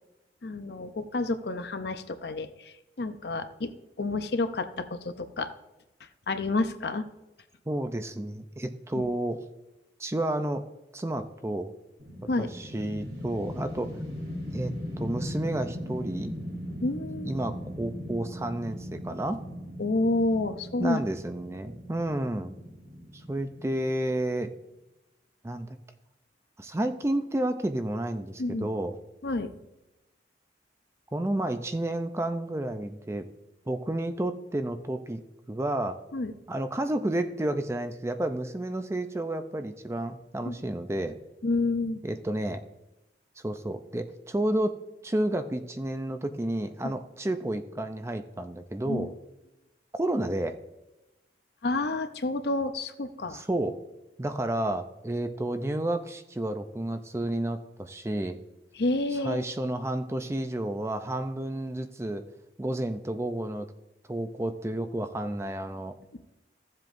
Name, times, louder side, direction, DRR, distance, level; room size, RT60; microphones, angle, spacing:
voice 1, 0.4-5.5 6.0-7.1 9.0-9.1 12.3-12.5 16.8-17.3 19.8-21.0 21.6-21.8 28.4-28.7 29.2-29.5 36.1-36.3 40.4-40.6 41.4-42.0 46.8-47.0 48.8-49.1 51.6-53.4 58.7-59.5 66.1-66.2, left 2 dB, 60° left, 9 dB, 0.6 m, -29 dB
voice 2, 7.7-9.4 10.0-10.6 10.9-11.7 12.4-13.9 14.5-16.3 17.2-19.4 20.8-22.5 23.1-24.5 25.4-25.7 26.6-28.9 31.1-33.3 33.7-35.2 35.5-36.0 36.5-41.2 42.0-42.6 43.4-44.8 45.0-49.1 49.9-50.6 53.3-53.8 54.2-58.4 59.2-62.2 62.6-63.7 64.1-66.0, right 1 dB, 15° right, 8 dB, 0.4 m, -31 dB
sound 1, 12.0-24.2, equal, 75° right, 3.0 m, -39 dB
15.0 x 7.5 x 2.6 m, 0.98 s
head